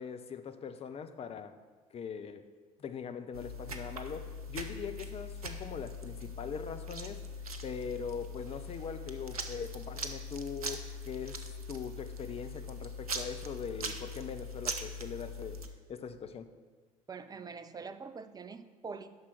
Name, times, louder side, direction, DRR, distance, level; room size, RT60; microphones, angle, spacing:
voice 1, 0.0-1.5 1.9-2.4 2.8-7.2 7.6-11.4 11.7-15.6 15.9-16.5, left 6 dB, 35° left, 8 dB, 0.7 m, -41 dB
sound 1, 3.3-15.7, left 1 dB, 80° right, 0.6 m, -41 dB
voice 2, 17.1-19.1, right 5 dB, 20° right, 10 dB, 0.6 m, -44 dB
9.6 x 6.0 x 6.0 m, 1.4 s
figure-of-eight pair, 55°, 18 cm